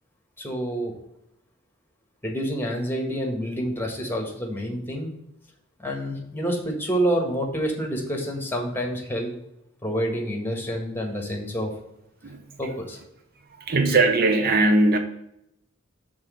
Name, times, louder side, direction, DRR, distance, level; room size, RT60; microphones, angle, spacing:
voice 1, 0.4-0.9 2.2-5.1 5.8-9.3 9.8-11.7 12.6-13.0, equal, 10° left, 1.5 m, -28 dB
voice 2, 13.6-15.0, right 2 dB, 50° right, 0.7 m, -20 dB
6.2 x 3.9 x 6.2 m
head